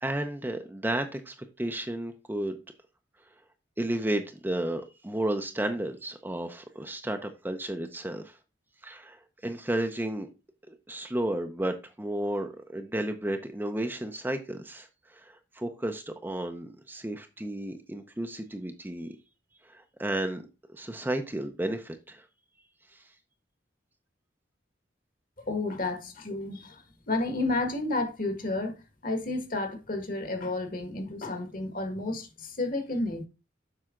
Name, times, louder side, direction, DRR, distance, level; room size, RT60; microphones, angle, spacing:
voice 1, 0.0-2.6 3.8-8.3 8.8-9.2 9.4-10.3 10.7-19.2 19.7-20.4 20.7-22.2, right 1 dB, 10° right, 0.6 m, -33 dB
voice 2, 25.5-33.3, left 2 dB, 50° left, 1.6 m, -31 dB
7.6 x 5.5 x 3.7 m
head